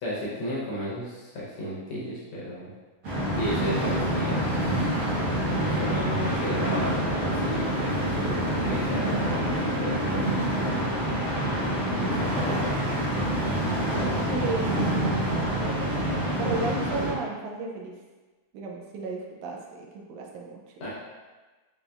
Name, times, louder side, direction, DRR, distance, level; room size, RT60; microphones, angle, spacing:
voice 1, 0.0-2.7 3.3-4.8 5.5-11.1 12.0-12.7 20.8-20.9, left 1 dB, 70° left, -6 dB, 1.3 m, -34 dB
sound 1, 3.0-17.1, right 1 dB, 60° right, 1.0 m, -26 dB
voice 2, 13.2-13.6 14.3-15.3 15.6-17.9 18.5-20.6, right 3 dB, 85° right, -1 dB, 2.0 m, -34 dB
5.4 x 3.4 x 2.3 m, 1.3 s
omnidirectional pair, 3.3 m